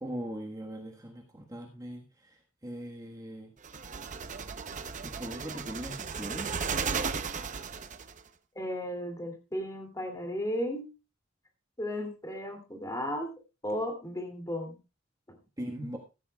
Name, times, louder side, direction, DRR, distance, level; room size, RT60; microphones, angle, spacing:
voice 1, 0.0-3.5 5.0-6.7 15.6-16.0, right 1 dB, 15° right, 1 dB, 1.4 m, -40 dB
sound 1, 3.6-8.2, right 5 dB, 40° right, 0.7 m, -35 dB
voice 2, 8.5-10.9 11.8-13.3 13.6-14.8, equal, 15° left, 3 dB, 2.6 m, -34 dB
14.5 x 14.5 x 2.3 m, 0.30 s
head